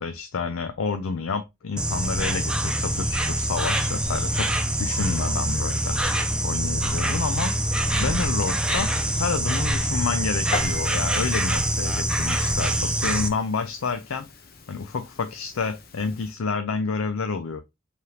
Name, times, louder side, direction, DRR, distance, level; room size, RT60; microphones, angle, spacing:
voice 1, 0.0-4.5 4.8-6.0 6.4-7.5 8.0-8.9 9.2-14.2 14.7-17.6, left 4 dB, 75° left, 0.5 m, -29 dB
Insect, 1.8-13.3, right 1 dB, 5° right, 0.5 m, -25 dB
Piano, 10.5-16.4, left 2 dB, 45° left, 0.8 m, -39 dB
4.8 x 3.4 x 2.8 m
head